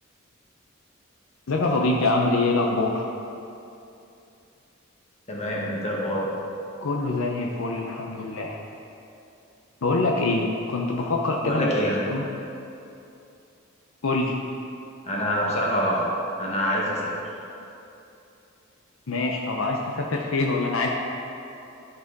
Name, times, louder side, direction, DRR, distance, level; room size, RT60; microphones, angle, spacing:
voice 1, 1.5-3.0 6.8-8.6 9.8-11.7 12.1-12.2 14.0-14.3 19.1-20.9, left 2 dB, 70° left, -1 dB, 0.7 m, -24 dB
voice 2, 5.3-6.2 11.4-12.0 15.1-16.1 16.4-17.1, equal, 30° left, -4 dB, 1.5 m, -25 dB
12.5 x 4.6 x 4.0 m, 2.7 s
head